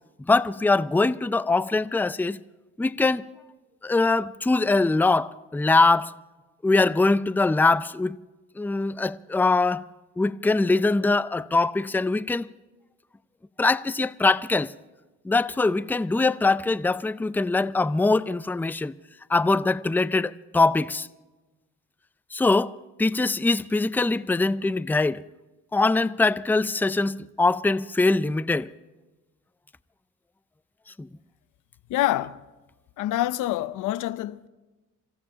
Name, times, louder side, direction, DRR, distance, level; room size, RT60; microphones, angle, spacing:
voice 1, 0.3-2.4 2.8-3.3 3.8-6.1 6.6-8.2 8.6-9.8 10.2-12.5 13.6-14.7 15.2-18.9 19.3-21.1 22.3-22.7 23.0-25.2 25.7-28.7 31.0-31.1, left 3 dB, 5° left, 0.5 m, -22 dB
voice 2, 31.9-32.4 33.0-34.5, left 14 dB, 85° left, 0.7 m, -26 dB
26.5 x 16.0 x 2.8 m
cardioid pair, 90°, 30 cm